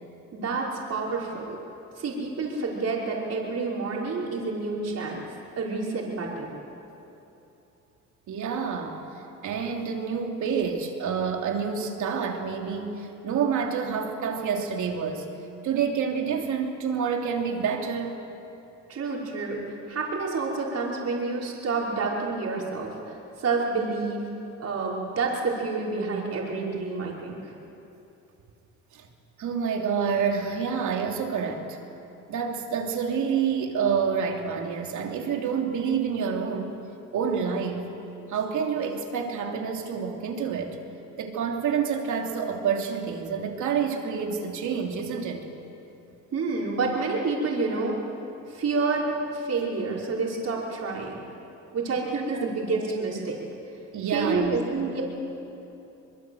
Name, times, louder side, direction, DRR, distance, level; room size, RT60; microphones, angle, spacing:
voice 1, 0.3-1.6 2.0-5.2 5.6-6.5 18.9-24.2 24.6-27.5 46.3-48.0 48.5-51.2 51.7-53.4 54.1-55.0, right 3 dB, 55° right, -3 dB, 5.4 m, -29 dB
voice 2, 8.3-15.3 15.6-18.2 28.9-29.1 29.4-31.8 32.3-36.8 37.1-37.9 38.3-40.8 41.2-45.5 52.3-52.5 53.9-54.6, right 6 dB, 75° right, 2 dB, 3.2 m, -28 dB
24.5 x 22.5 x 8.0 m, 2.9 s
cardioid pair, 90°, 30 cm